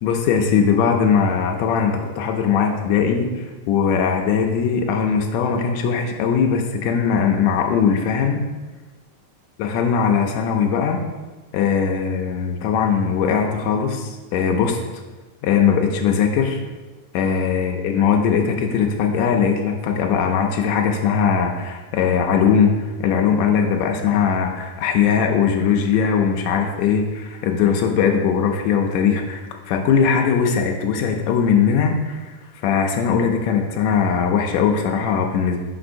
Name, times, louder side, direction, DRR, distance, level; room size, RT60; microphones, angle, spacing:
voice 1, 0.0-8.4 9.6-11.0 11.5-14.8 15.4-16.6 17.1-22.7 23.0-29.4 29.7-32.3 32.6-35.6, left 6 dB, 85° left, 2 dB, 1.5 m, -20 dB
6.1 x 6.0 x 2.6 m, 1.3 s
omnidirectional pair, 3.6 m